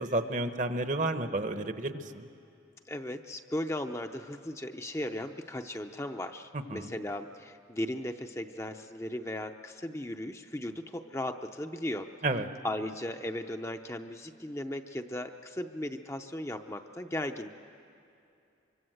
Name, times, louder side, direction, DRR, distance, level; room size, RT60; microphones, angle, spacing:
voice 1, 0.0-2.3 6.5-6.9 12.2-12.5, right 2 dB, 40° right, 9 dB, 1.0 m, -31 dB
voice 2, 2.9-12.1 12.6-17.5, left 1 dB, 15° left, 5 dB, 0.6 m, -37 dB
25.0 x 24.0 x 7.8 m, 2.6 s
head